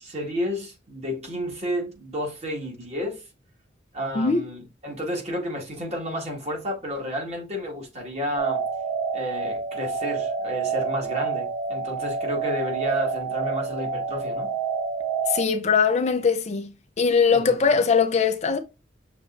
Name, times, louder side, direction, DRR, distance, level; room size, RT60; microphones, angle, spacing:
voice 1, 0.0-3.2 3.9-8.6 9.1-14.5 17.3-17.5, equal, 35° right, 1.7 m, -31 dB
sound 1, 8.4-15.4, right 5 dB, 90° right, 0.5 m, -28 dB
voice 2, 15.3-16.7 17.0-18.6, left 5 dB, 40° left, 0.5 m, -21 dB
6.0 x 3.5 x 2.5 m
head